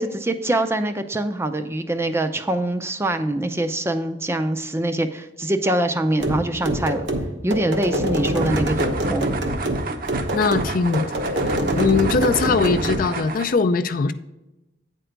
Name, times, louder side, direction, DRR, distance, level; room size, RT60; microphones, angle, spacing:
voice 1, 0.0-7.1 7.4-9.3, right 1 dB, 15° right, 8 dB, 0.5 m, -24 dB
sound 1, 6.2-13.1, right 1 dB, 75° right, 1.1 m, -25 dB
sound 2, 8.3-13.5, right 3 dB, 50° right, 0.8 m, -32 dB
voice 2, 10.3-11.0 11.5-14.1, left 4 dB, 50° left, 9 dB, 0.4 m, -21 dB
8.9 x 4.5 x 5.0 m, 0.99 s
head